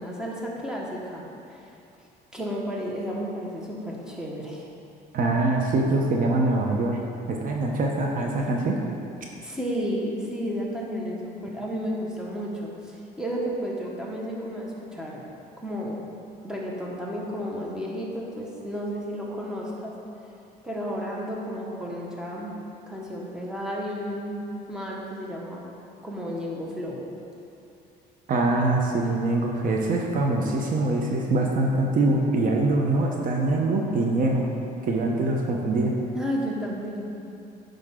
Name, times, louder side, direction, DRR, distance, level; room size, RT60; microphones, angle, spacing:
voice 1, 0.0-1.7 2.3-4.6 9.4-15.2 15.6-16.0 16.4-19.9 20.6-22.5 22.9-24.4 24.7-25.6 26.0-27.1 36.1-37.1, equal, 5° right, -4 dB, 1.4 m, -32 dB
voice 2, 5.1-7.0 7.3-8.8 28.3-34.5 34.9-35.9, right 2 dB, 55° right, 0 dB, 0.9 m, -23 dB
10.5 x 5.3 x 3.8 m, 2.7 s
cardioid pair, 110°, 17 cm